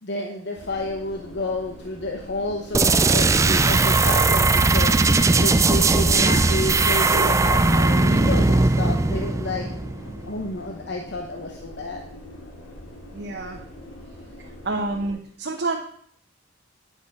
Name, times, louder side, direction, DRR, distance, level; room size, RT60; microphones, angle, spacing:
voice 1, 0.0-9.7 10.2-12.0, left 2 dB, 55° left, 2 dB, 0.9 m, -30 dB
sound 1, 0.6-15.1, left 1 dB, 80° left, 2.1 m, -43 dB
sound 2, 2.7-10.3, right 3 dB, 15° right, 0.3 m, -19 dB
voice 2, 13.1-13.6 14.6-15.8, right 2 dB, 55° right, 0 dB, 1.1 m, -28 dB
9.9 x 6.2 x 5.4 m, 0.64 s
head